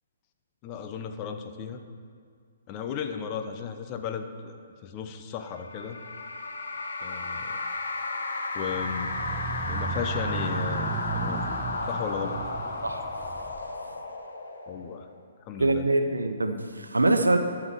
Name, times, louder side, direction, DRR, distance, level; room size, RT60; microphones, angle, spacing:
voice 1, 0.6-1.8 2.7-6.0 7.0-7.6 8.5-9.1 9.7-11.4 11.9-12.4 14.7-15.1 15.4-15.8, left 7 dB, 30° left, 7 dB, 0.9 m, -35 dB
sound 1, 5.5-15.2, left 3 dB, 70° left, 1.2 m, -33 dB
sound 2, 8.7-13.7, right 6 dB, 20° right, 0.7 m, -35 dB
voice 2, 15.6-17.4, right 2 dB, 85° right, 7 dB, 0.9 m, -24 dB
11.5 x 5.9 x 7.1 m, 2.1 s
figure-of-eight pair, 130°, 0 cm